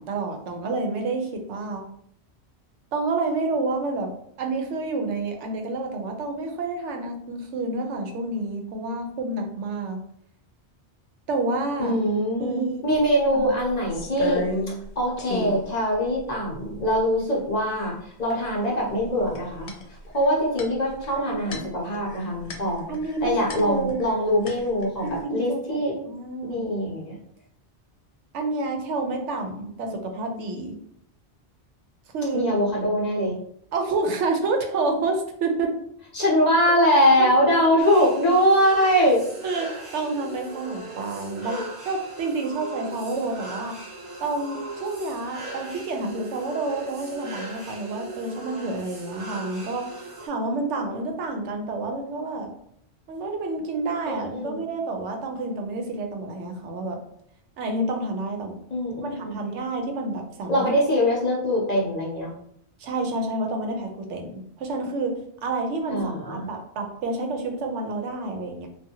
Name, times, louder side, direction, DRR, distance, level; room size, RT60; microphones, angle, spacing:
voice 1, 0.0-1.8 2.9-4.1 4.4-10.0 11.3-12.0 12.4-12.8 13.3-13.5 21.2-21.7 22.9-24.0 25.0-25.8 26.1-26.6 28.3-30.7 32.1-32.6 33.7-35.7 37.2-37.3 39.4-43.8 44.2-52.5 53.1-57.0 57.6-58.6 59.0-60.7 62.8-68.7, right 3 dB, 85° right, 4 dB, 0.9 m, -29 dB
voice 2, 11.8-19.7 20.1-22.9 23.2-25.9 26.4-27.2 32.3-33.4 36.1-39.3 41.4-41.7 54.1-54.6 58.7-59.4 60.5-62.3 65.9-66.5, equal, 45° left, -4 dB, 0.7 m, -23 dB
sound 1, 13.0-13.1 13.4-14.9 15.2-15.6 16.2-16.3 16.5-17.2 18.3-18.7 19.0-24.2 24.5-25.2, left 2 dB, 80° left, 0.9 m, -33 dB
sound 2, 37.8-50.3, right 2 dB, 40° right, 0.6 m, -39 dB
2.6 x 2.4 x 2.7 m, 0.69 s
omnidirectional pair, 1.2 m